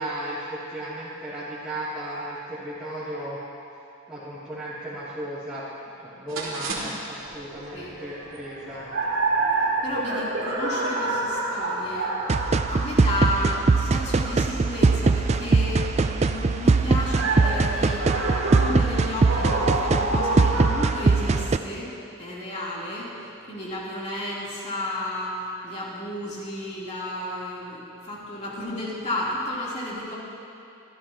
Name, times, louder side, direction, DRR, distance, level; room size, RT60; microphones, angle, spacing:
voice 1, 0.0-3.4 4.1-5.7 6.0-8.8, right 1 dB, 5° right, -14 dB, 2.5 m, -35 dB
sound 1, 6.3-20.9, right 2 dB, 65° right, 2.3 m, -29 dB
voice 2, 9.8-12.1 12.7-18.1 18.5-23.1 23.5-30.2, left 1 dB, 30° left, -7 dB, 3.1 m, -32 dB
sound 2, 12.3-21.6, right 3 dB, 30° right, 0.3 m, -21 dB
25.0 x 13.5 x 2.9 m, 2.6 s
head